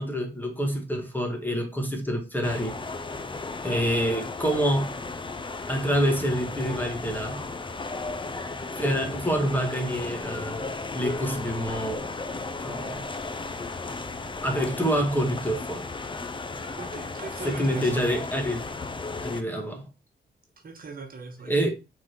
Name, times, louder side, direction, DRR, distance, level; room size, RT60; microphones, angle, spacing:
voice 1, 0.0-2.7 3.6-5.0 5.7-7.4 8.8-12.1 12.6-13.1 14.4-15.8 17.4-18.6 19.2-19.8 21.5-21.7, equal, 10° left, 1.9 m, -27 dB
sound 1, 2.4-19.4, left 3 dB, 25° left, 0.8 m, -35 dB
voice 2, 16.8-18.0 20.6-21.7, right 4 dB, 50° right, 1.4 m, -40 dB
6.1 x 4.1 x 4.7 m
cardioid pair, 100°, 19 cm